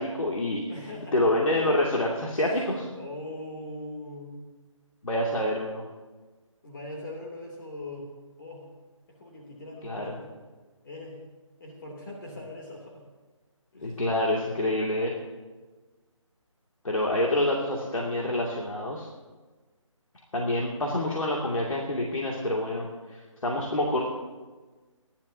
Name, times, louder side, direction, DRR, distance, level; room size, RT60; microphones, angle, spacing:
voice 1, 0.0-0.6 1.1-2.9 5.0-5.9 9.8-10.1 13.8-15.1 16.8-19.1 20.3-22.9 23.4-24.0, left 1 dB, 85° left, -3 dB, 2.5 m, -27 dB
voice 2, 0.7-1.7 2.3-4.3 6.6-8.1 8.4-8.7 9.1-10.3 10.8-11.2 11.6-13.1 13.7-14.0, left 1 dB, 40° left, -1 dB, 2.9 m, -41 dB
26.5 x 12.0 x 2.8 m, 1.3 s
figure-of-eight pair, 160°, 17 cm